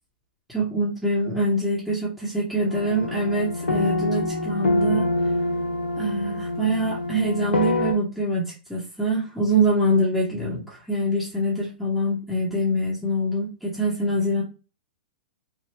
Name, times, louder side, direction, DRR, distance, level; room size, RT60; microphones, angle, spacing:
voice 1, 0.5-5.1 6.0-14.4, right 1 dB, ahead, -7 dB, 0.9 m, -24 dB
sound 1, 2.7-7.9, left 2 dB, 80° left, 0.7 m, -26 dB
3.3 x 2.2 x 2.9 m, 0.32 s
figure-of-eight pair, 110°, 5 cm